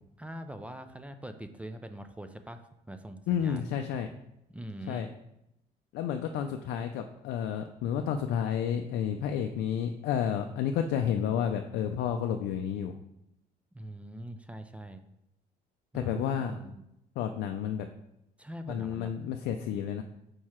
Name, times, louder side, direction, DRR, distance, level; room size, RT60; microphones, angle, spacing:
voice 1, 0.2-3.7 4.5-5.1 13.7-15.0 15.9-16.8 18.4-19.1, right 1 dB, 5° right, 8 dB, 0.4 m, -43 dB
voice 2, 3.3-4.1 4.9-5.1 5.9-13.0 15.9-16.5 17.2-17.9 18.7-20.0, left 8 dB, 80° left, 6 dB, 0.4 m, -31 dB
4.7 x 4.6 x 4.3 m, 0.83 s
cardioid pair, 110°, 17 cm